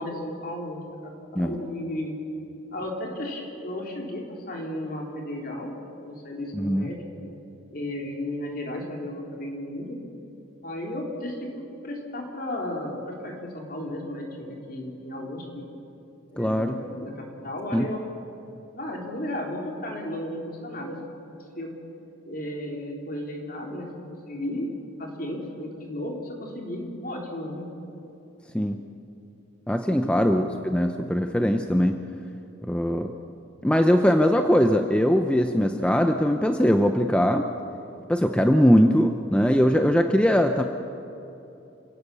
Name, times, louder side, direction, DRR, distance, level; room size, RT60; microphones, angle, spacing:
voice 1, 0.0-2.1 2.7-5.7 6.0-7.0 7.7-10.0 10.6-11.5 11.8-15.6 16.3-18.0 18.7-21.0 21.6-21.7 22.2-24.7 25.0-27.7 30.0-30.3, left 1 dB, 45° left, 0 dB, 3.5 m, -34 dB
voice 2, 6.5-6.8 16.4-16.8 17.7-17.9 28.5-28.8 29.7-32.0 32.6-33.1 33.6-37.5 38.1-40.6, equal, 5° left, 5 dB, 0.6 m, -21 dB
28.0 x 17.0 x 6.9 m, 2.9 s
head